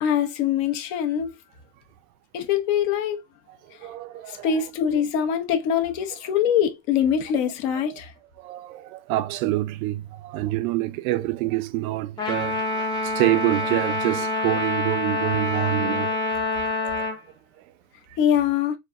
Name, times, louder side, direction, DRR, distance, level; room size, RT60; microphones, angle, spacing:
voice 1, 0.0-1.3 2.3-3.2 4.3-8.1 18.2-18.7, left 8 dB, 55° left, 0.8 m, -23 dB
voice 2, 3.8-4.5 8.4-16.2 16.5-17.1, right 17 dB, 60° right, 0.5 m, -27 dB
Trumpet, 12.2-17.2, left 2 dB, 10° left, 0.6 m, -26 dB
4.1 x 2.2 x 2.4 m
supercardioid pair, 135°, 49 cm